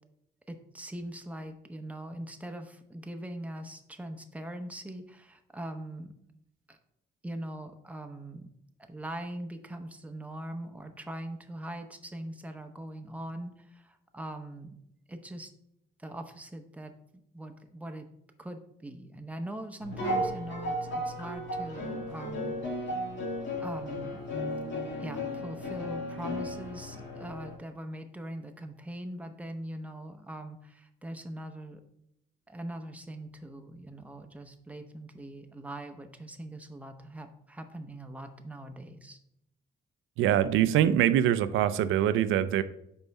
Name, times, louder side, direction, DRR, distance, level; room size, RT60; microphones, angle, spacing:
voice 1, 0.5-6.1 6.7-6.8 7.2-8.5 8.8-14.8 15.1-15.5 16.0-16.9 17.3-18.1 18.4-23.0 23.6-24.2 25.0-31.8 32.5-39.2, right 1 dB, 5° right, 6 dB, 0.7 m, -41 dB
sound 1, 19.8-27.6, equal, 65° left, 1.8 m, -34 dB
voice 2, 40.2-42.6, right 11 dB, 85° right, 13 dB, 0.5 m, -24 dB
5.4 x 4.5 x 4.1 m, 0.77 s
cardioid pair, 90°, 20 cm